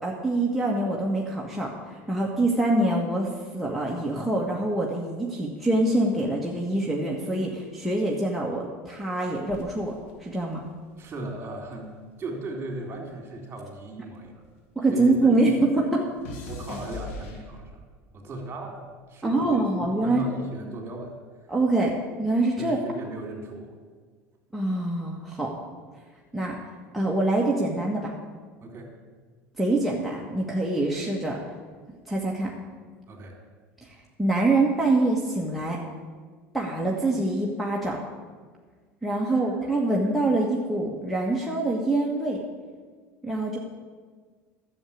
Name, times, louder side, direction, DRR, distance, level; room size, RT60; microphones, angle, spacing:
voice 1, 0.0-9.9 10.2-10.6 14.7-16.0 19.2-20.2 21.5-21.9 22.2-22.8 24.5-25.5 26.3-26.6 26.9-28.1 29.6-31.4 32.1-32.5 33.8-35.8 36.5-38.0 39.0-42.4 43.2-43.6, right 2 dB, ahead, -4 dB, 1.7 m, -25 dB
sound 1, 9.5-12.0 12.3-14.9 15.2-18.0 18.7-19.1, left 3 dB, 80° left, 2.1 m, -42 dB
voice 2, 11.0-11.9 12.2-14.5 14.9-15.2 16.5-17.8 18.1-18.8 19.1-19.6 20.0-21.5 22.6-23.8 28.6-28.9 33.1-33.4 39.2-39.4, right 2 dB, 30° right, 2 dB, 3.6 m, -37 dB
10.5 x 7.5 x 8.7 m, 1.5 s
hypercardioid pair, 90°, 7 cm